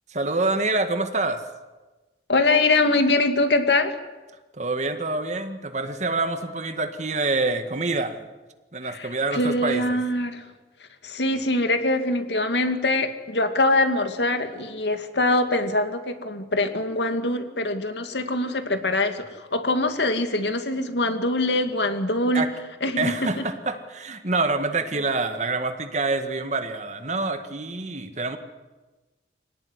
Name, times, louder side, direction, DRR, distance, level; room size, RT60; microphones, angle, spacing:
voice 1, 0.1-1.4 4.5-8.2 8.7-10.0 22.3-22.5 23.0-28.4, right 3 dB, 40° right, 8 dB, 1.9 m, -26 dB
voice 2, 2.3-4.0 8.9-10.4 11.0-22.4 22.8-23.1, left 2 dB, 80° left, 7 dB, 2.4 m, -23 dB
26.0 x 18.0 x 9.9 m, 1.2 s
head